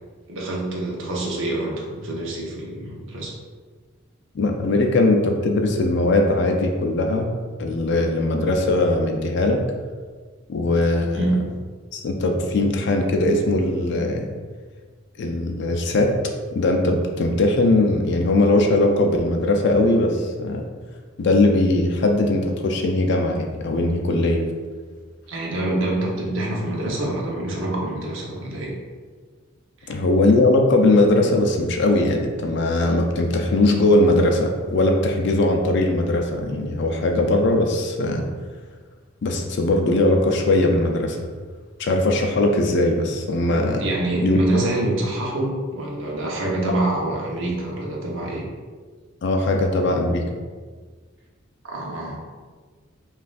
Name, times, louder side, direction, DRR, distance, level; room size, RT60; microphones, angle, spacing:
voice 1, 0.3-3.3 11.1-11.4 25.3-28.7 29.8-29.9 43.8-48.4 51.6-52.2, right 1 dB, 65° right, -2 dB, 0.8 m, -26 dB
voice 2, 4.3-9.6 10.5-11.2 11.9-14.3 15.2-16.2 16.5-20.6 21.2-24.4 29.9-38.2 39.2-41.2 41.8-43.8 44.2-44.4 49.2-50.2, left 2 dB, 55° left, 3 dB, 0.4 m, -20 dB
5.6 x 2.4 x 2.4 m, 1.5 s
head